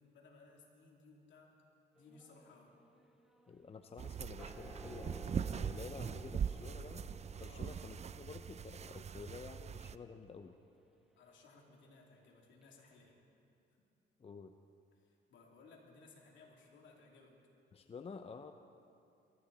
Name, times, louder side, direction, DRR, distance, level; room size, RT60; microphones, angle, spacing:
voice 1, 0.0-1.5 1.9-2.8 7.4-7.7 11.2-13.2 13.7-13.9 15.0-17.4, left 3 dB, 70° left, -1 dB, 2.9 m, -61 dB
sound 1, 2.0-12.3 12.6-12.7, equal, ahead, 1.5 m, -59 dB
voice 2, 3.5-7.1 7.4-10.6 14.2-14.6 17.7-18.5, left 5 dB, 30° left, 7 dB, 0.6 m, -50 dB
sound 2, 4.0-10.0, right 7 dB, 35° right, 0.4 m, -41 dB
23.0 x 13.5 x 4.0 m, 2.6 s
cardioid pair, 90°, 20 cm